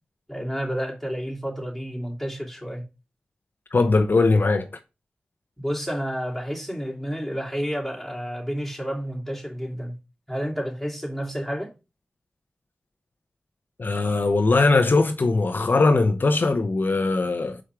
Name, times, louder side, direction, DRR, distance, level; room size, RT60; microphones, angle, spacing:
voice 1, 0.3-2.9 5.6-9.9 10.3-11.7, equal, ahead, 2.8 m, -30 dB
voice 2, 3.7-4.7 13.8-17.6, left 3 dB, 55° left, 0.7 m, -20 dB
6.2 x 4.8 x 4.6 m
cardioid pair, 50°, 4 cm